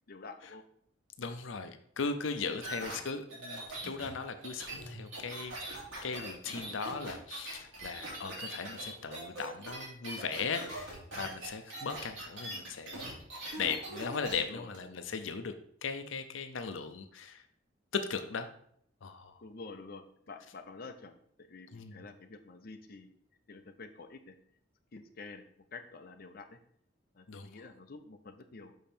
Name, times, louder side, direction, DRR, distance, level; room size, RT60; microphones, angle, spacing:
voice 1, 0.1-0.6 2.5-2.6 14.3-14.7 19.4-21.1 21.5-23.2 23.5-24.4 24.9-26.6 27.1-28.7, left 3 dB, 50° left, 5 dB, 0.7 m, -49 dB
voice 2, 1.2-5.5 6.0-13.2 13.6-15.5 15.8-17.4 17.9-18.5 19.0-19.4 21.7-22.0 27.3-27.5, left 5 dB, 85° left, 8 dB, 0.6 m, -38 dB
sound 1, 2.6-14.4 14.7-14.8, right 1 dB, 85° right, 2.8 m, -42 dB
6.3 x 5.3 x 4.4 m, 0.67 s
head